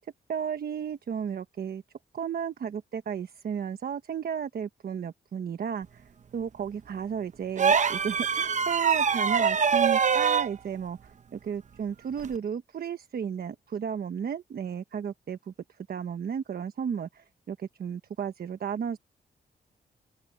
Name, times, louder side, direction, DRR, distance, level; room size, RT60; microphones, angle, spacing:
voice 1, 0.3-1.8 2.1-6.0 6.3-15.5 15.9-19.0, right 7 dB, 65° right, 1.2 m, -34 dB
sound 1, 7.6-10.5 12.2-12.4, right 6 dB, 45° right, 0.8 m, -24 dB
open air
cardioid pair, 105°, 17 cm